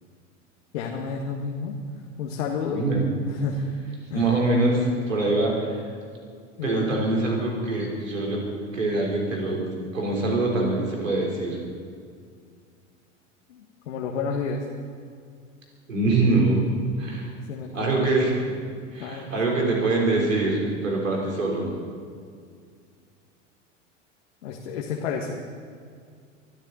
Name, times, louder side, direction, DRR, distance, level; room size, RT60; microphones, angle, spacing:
voice 1, 0.7-1.8 2.2-2.8 3.3-3.6 4.1-4.3 6.6-7.1 13.5-14.7 17.5-17.9 19.0-19.6 24.4-25.3, left 5 dB, 65° left, 0 dB, 1.7 m, -31 dB
voice 2, 2.7-3.0 4.1-5.7 6.6-8.4 8.7-9.6 9.9-11.6 15.9-16.6 17.0-17.3 17.7-18.3 18.9-21.7, right 2 dB, 80° right, -2 dB, 4.1 m, -24 dB
23.0 x 12.5 x 4.2 m, 2.1 s
figure-of-eight pair, 80°, 38 cm